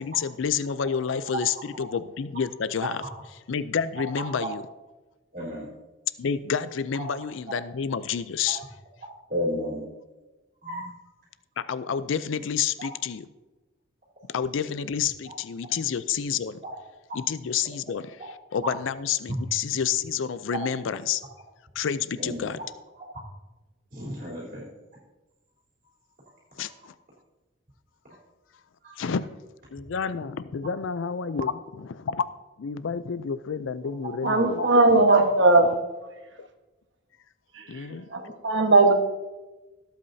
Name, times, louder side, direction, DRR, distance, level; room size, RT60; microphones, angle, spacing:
voice 1, 0.0-3.0 3.5-4.6 6.2-8.6 11.6-13.3 14.3-16.6 17.1-21.2 21.8-22.6 26.6-26.9 29.0-29.3 29.7-32.2 32.6-35.0 36.4-36.5 37.7-38.1, left 7 dB, 80° left, 14 dB, 0.4 m, -29 dB
voice 2, 5.3-5.7 7.0-7.1 8.5-8.6 9.3-9.8 10.6-10.9 12.8-12.9 16.6-16.7 18.6-18.7 20.5-20.6 22.2-22.5 23.9-24.7 26.6-26.7 28.8-28.9 34.2-34.3 34.6-34.7, equal, 45° right, -6 dB, 3.6 m, -32 dB
voice 3, 34.2-35.8 37.5-37.8 38.1-38.9, right 3 dB, 70° right, 5 dB, 1.3 m, -19 dB
18.0 x 8.3 x 2.7 m, 1.1 s
head